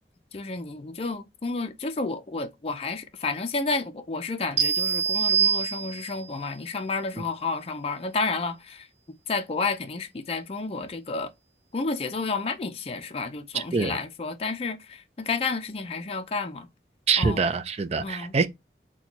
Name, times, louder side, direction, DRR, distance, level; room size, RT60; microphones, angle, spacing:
voice 1, 0.3-8.9 9.3-11.3 11.7-16.7 17.2-17.4 18.0-18.3, left 3 dB, 35° left, 0.4 m, -31 dB
sound 1, 4.6-6.3, right 7 dB, 80° right, 0.9 m, -24 dB
voice 2, 13.5-14.0 17.1-18.5, right 4 dB, 35° right, 0.4 m, -24 dB
3.9 x 2.2 x 2.9 m
head